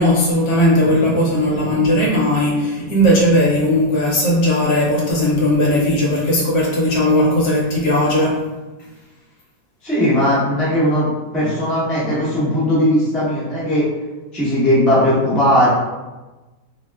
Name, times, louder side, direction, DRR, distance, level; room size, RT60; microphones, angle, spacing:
voice 1, 0.0-8.4, left 1 dB, 70° left, -3 dB, 1.1 m, -17 dB
voice 2, 9.8-11.1 11.3-13.9 14.3-15.7, equal, ahead, -9 dB, 0.3 m, -17 dB
2.9 x 2.1 x 3.3 m, 1.1 s
omnidirectional pair, 1.9 m